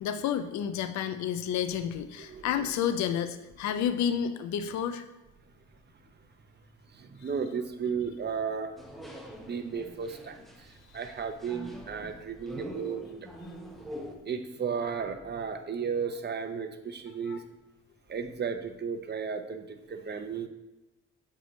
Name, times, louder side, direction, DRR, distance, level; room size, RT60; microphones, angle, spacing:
voice 1, 0.0-5.0 17.3-17.4, left 9 dB, 65° left, 10 dB, 0.5 m, -30 dB
voice 2, 2.2-2.7 3.7-3.8 6.9-8.7 9.4-13.0 14.2-17.4 18.1-20.5, right 6 dB, 35° right, 7 dB, 0.7 m, -34 dB
sound 1, 8.8-14.2, equal, ahead, 0.9 m, -44 dB
7.2 x 5.5 x 3.1 m, 1.0 s
cardioid pair, 90°, 30 cm